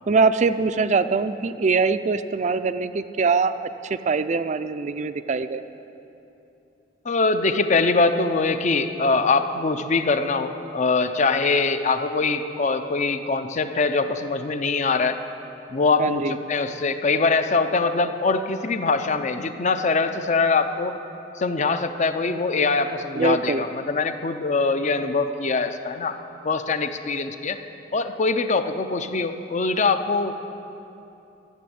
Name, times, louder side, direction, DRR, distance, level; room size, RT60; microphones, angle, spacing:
voice 1, 0.1-5.6 16.0-16.4 23.2-23.7, right 4 dB, 40° right, 12 dB, 0.4 m, -23 dB
voice 2, 7.0-15.2 15.7-21.0 21.3-26.2 26.4-27.6 27.9-30.3, left 4 dB, 40° left, 9 dB, 0.6 m, -23 dB
13.0 x 7.1 x 9.4 m, 2.9 s
head